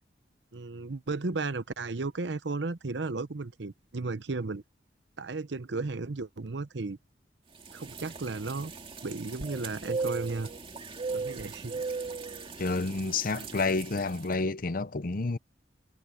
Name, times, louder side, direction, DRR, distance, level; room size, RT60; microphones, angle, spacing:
voice 1, 0.5-4.6 5.2-7.0 7.7-8.7 9.0-10.5 11.1-11.8, right 3 dB, 70° right, 0.8 m, -34 dB
sound 1, 7.6-14.2, right 4 dB, 30° right, 2.3 m, -38 dB
voice 2, 12.6-15.4, left 3 dB, 50° left, 0.7 m, -29 dB
head